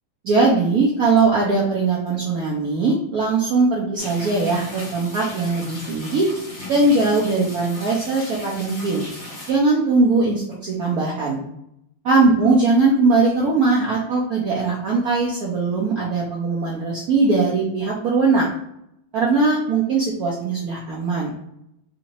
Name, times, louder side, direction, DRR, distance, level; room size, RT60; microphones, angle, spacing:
voice 1, 0.3-6.3 6.7-9.0 9.5-11.4 12.0-18.5 19.1-21.3, right 3 dB, 70° right, -4 dB, 0.8 m, -20 dB
sound 1, 4.0-9.5, left 2 dB, 35° left, 1.3 m, -36 dB
3.9 x 2.6 x 2.9 m, 0.79 s
omnidirectional pair, 2.3 m